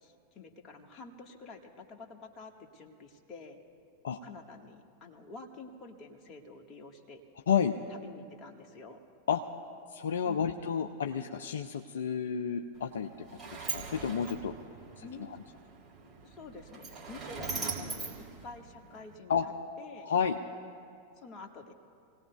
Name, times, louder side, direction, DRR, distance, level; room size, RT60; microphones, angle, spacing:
voice 1, 0.0-3.6 4.2-7.2 7.9-9.0 10.2-10.5 15.0-15.3 16.2-19.5 19.8-20.1 21.2-21.7, left 3 dB, 30° left, 2 dB, 1.6 m, -49 dB
voice 2, 9.9-13.4 13.7-14.5 15.0-15.1 19.3-19.4 20.0-20.4, left 7 dB, 65° left, 4 dB, 0.6 m, -30 dB
Sliding door, 12.7-19.1, right 4 dB, 25° right, 3.3 m, -41 dB
28.0 x 18.0 x 2.3 m, 2.5 s
figure-of-eight pair, 90°, 0 cm